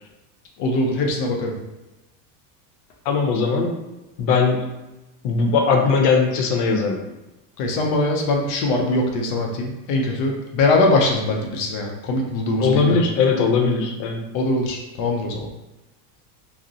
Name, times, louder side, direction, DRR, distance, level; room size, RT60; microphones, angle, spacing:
voice 1, 0.6-1.5 7.6-13.0 14.3-15.5, left 2 dB, 45° left, 1 dB, 0.4 m, -22 dB
voice 2, 3.1-3.8 4.2-4.7 5.2-7.0 12.6-14.2, left 4 dB, 80° left, 3 dB, 0.6 m, -19 dB
2.4 x 2.0 x 2.6 m, 1.0 s
supercardioid pair, 150°, 47 cm